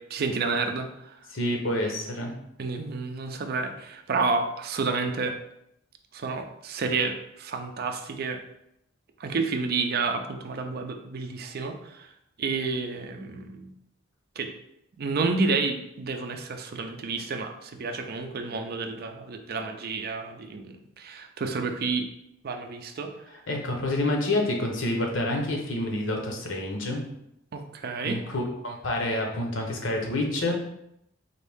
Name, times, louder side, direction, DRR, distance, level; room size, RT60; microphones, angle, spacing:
voice 1, 0.1-1.1 2.6-5.4 6.1-8.4 9.2-12.1 12.4-13.7 14.4-14.5 15.0-22.1 22.4-23.1 27.5-28.2, right 4 dB, 50° right, 5 dB, 0.4 m, -30 dB
voice 2, 1.3-2.3 23.5-27.0 28.0-30.5, left 1 dB, 70° left, 1 dB, 0.8 m, -28 dB
4.1 x 2.7 x 3.5 m, 0.79 s
head